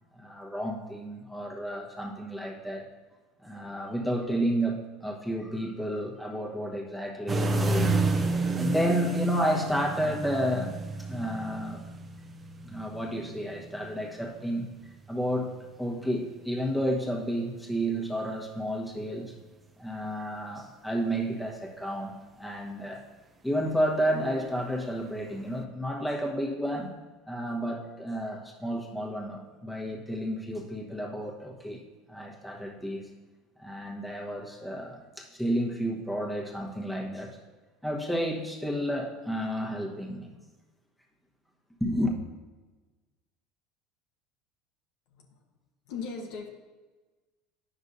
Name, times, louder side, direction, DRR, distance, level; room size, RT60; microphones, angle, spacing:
voice 1, 0.1-2.9 3.4-8.0 8.5-10.7 11.0-11.8 12.6-14.7 15.1-19.3 19.8-23.0 23.4-26.9 27.3-31.8 32.1-33.1 33.6-37.4 37.8-40.3 41.8-42.1, equal, 5° left, 0 dB, 1.2 m, -31 dB
sound 1, 7.3-15.0 16.7-17.1 25.5-25.6, right 3 dB, 20° right, 0.7 m, -30 dB
voice 2, 45.9-46.5, left 5 dB, 70° left, 1 dB, 0.9 m, -38 dB
9.7 x 6.2 x 2.7 m, 1.3 s
supercardioid pair, 115°, 0 cm